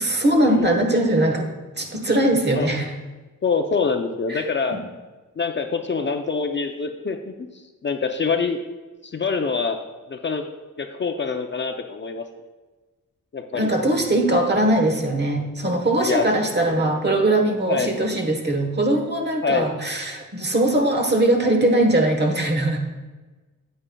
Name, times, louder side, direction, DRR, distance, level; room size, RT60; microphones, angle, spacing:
voice 1, 0.0-1.5 1.8-2.9 4.3-4.4 4.7-4.8 13.5-22.8, right 1 dB, 30° right, 3 dB, 1.2 m, -21 dB
voice 2, 3.4-4.8 5.4-7.5 7.8-8.6 9.0-9.8 10.1-10.4 10.8-12.2 13.3-13.7 16.0-16.3 17.7-18.0 19.4-19.7, left 5 dB, 35° left, 5 dB, 0.5 m, -25 dB
8.7 x 8.6 x 2.3 m, 1.3 s
cardioid pair, 85°, 32 cm